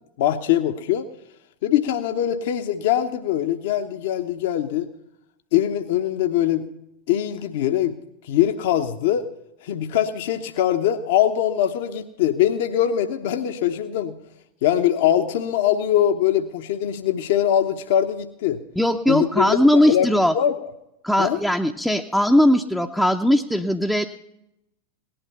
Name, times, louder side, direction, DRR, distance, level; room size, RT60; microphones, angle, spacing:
voice 1, 0.2-1.0 1.6-4.9 5.5-6.7 7.1-8.0 8.2-9.3 9.6-14.2 14.6-18.6 19.1-20.1 20.3-20.7 21.2-21.4, left 11 dB, 55° left, 7 dB, 0.9 m, -22 dB
voice 2, 18.8-20.3 21.0-24.0, left 1 dB, ahead, 2 dB, 0.6 m, -19 dB
18.0 x 11.5 x 5.6 m, 0.85 s
figure-of-eight pair, 90°, 0 cm